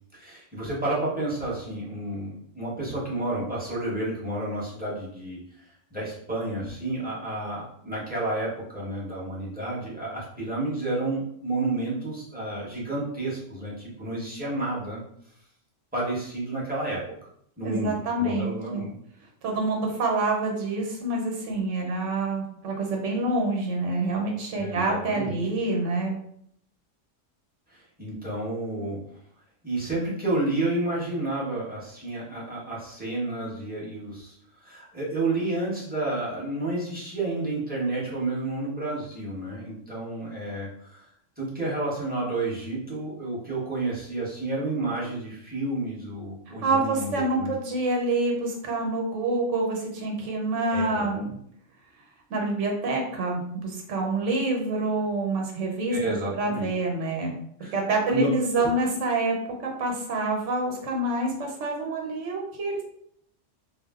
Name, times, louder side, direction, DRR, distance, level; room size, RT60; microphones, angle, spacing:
voice 1, 0.2-5.6 5.9-15.0 15.9-17.0 17.6-18.9 24.6-25.4 27.7-29.0 29.6-34.4 34.6-41.1 41.4-47.5 50.7-51.3 55.9-56.7 57.6-57.8 58.1-58.3 58.5-58.7, right 2 dB, 10° right, -7 dB, 0.8 m, -30 dB
voice 2, 17.6-18.9 19.4-26.1 46.6-51.3 52.3-57.3 57.7-59.4 59.6-62.8, right 2 dB, 75° right, 1 dB, 1.1 m, -27 dB
2.7 x 2.0 x 3.4 m, 0.69 s
omnidirectional pair, 1.3 m